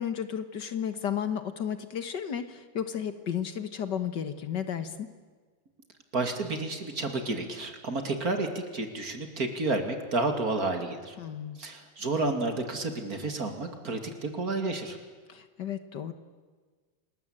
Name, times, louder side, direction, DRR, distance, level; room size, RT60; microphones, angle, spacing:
voice 1, 0.0-5.1 11.2-11.6 15.3-16.1, left 8 dB, 60° left, 11 dB, 1.9 m, -33 dB
voice 2, 6.1-11.2 11.6-15.0, right 2 dB, 45° right, 6 dB, 3.0 m, -31 dB
28.5 x 20.5 x 8.9 m, 1.5 s
omnidirectional pair, 2.2 m